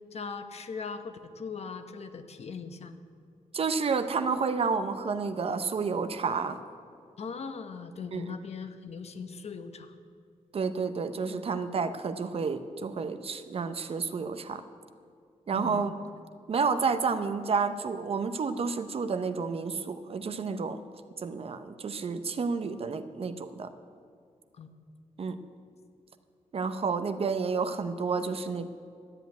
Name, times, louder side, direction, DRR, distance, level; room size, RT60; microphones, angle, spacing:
voice 1, 0.1-3.0 7.2-9.9 15.5-15.9 24.5-24.7, left 5 dB, 55° left, 9 dB, 0.9 m, -39 dB
voice 2, 3.5-6.6 8.1-8.2 10.5-14.6 15.5-15.9 16.5-20.8 21.2-23.7 25.2-25.4 26.5-28.7, right 5 dB, 50° right, 10 dB, 0.7 m, -30 dB
12.5 x 8.2 x 9.3 m, 2.3 s
wide cardioid pair, 130°, 13 cm